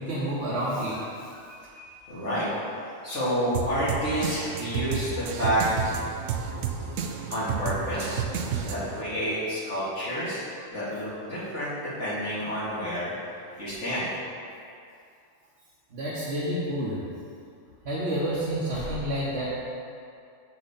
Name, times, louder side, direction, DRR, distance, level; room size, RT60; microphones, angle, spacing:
voice 1, 0.0-1.9 15.9-17.0 17.8-19.5, right 1 dB, 60° right, -8 dB, 1.5 m, -30 dB
voice 2, 2.1-2.5 3.0-5.7 7.3-11.7 12.0-13.1 13.6-14.1, equal, 65° left, -9 dB, 2.2 m, -29 dB
sound 1, 3.5-9.0, right 7 dB, 85° right, 1.0 m, -31 dB
7.3 x 6.5 x 4.2 m, 2.5 s
omnidirectional pair, 1.3 m